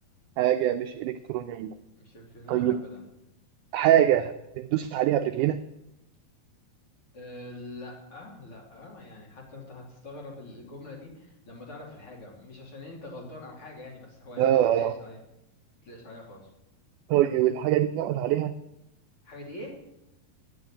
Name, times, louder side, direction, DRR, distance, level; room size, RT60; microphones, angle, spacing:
voice 1, 0.4-1.7 2.5-2.8 3.7-5.6 14.4-15.0 17.1-18.5, right 12 dB, 80° right, 8 dB, 1.8 m, -24 dB
voice 2, 2.0-3.0 7.1-15.2 15.8-16.5 19.2-19.7, left 2 dB, 40° left, -2 dB, 3.2 m, -44 dB
9.7 x 9.6 x 8.6 m, 0.90 s
omnidirectional pair, 4.1 m